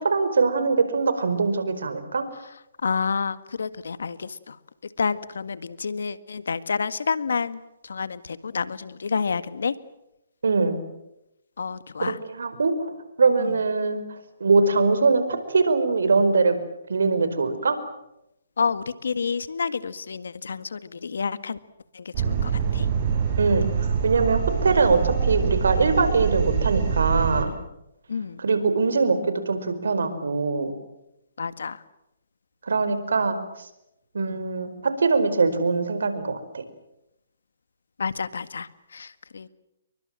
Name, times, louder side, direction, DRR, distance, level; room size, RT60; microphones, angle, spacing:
voice 1, 0.0-2.2 10.4-10.8 12.0-14.1 14.4-16.6 16.9-17.8 23.4-27.5 28.4-30.7 32.7-33.4 34.1-36.6, right 4 dB, 80° right, 11 dB, 4.9 m, -22 dB
voice 2, 2.8-4.6 5.0-9.7 11.6-12.2 13.4-13.6 18.6-21.6 21.9-22.9 28.1-28.4 31.4-31.8 34.2-34.4 38.0-39.5, left 5 dB, 80° left, 14 dB, 1.8 m, -29 dB
sound 1, 22.1-27.5, right 7 dB, 40° right, 6.4 m, -25 dB
29.5 x 23.5 x 7.6 m, 0.87 s
hypercardioid pair, 145°, 0 cm